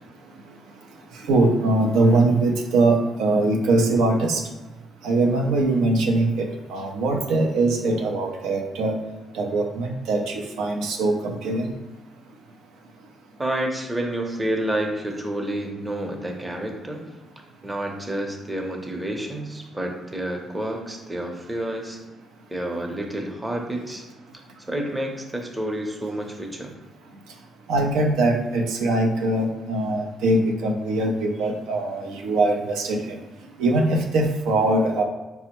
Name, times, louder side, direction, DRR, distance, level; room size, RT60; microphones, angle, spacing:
voice 1, 1.3-4.4 5.0-6.4 6.7-9.0 9.3-11.7 27.7-33.0 33.6-35.0, right 2 dB, 90° right, 2 dB, 0.4 m, -22 dB
voice 2, 13.4-17.0 17.6-22.0 22.5-24.0 24.7-26.7, right 1 dB, 15° right, 2 dB, 0.6 m, -29 dB
4.3 x 2.0 x 2.9 m, 1.2 s
cardioid pair, 90°, 0 cm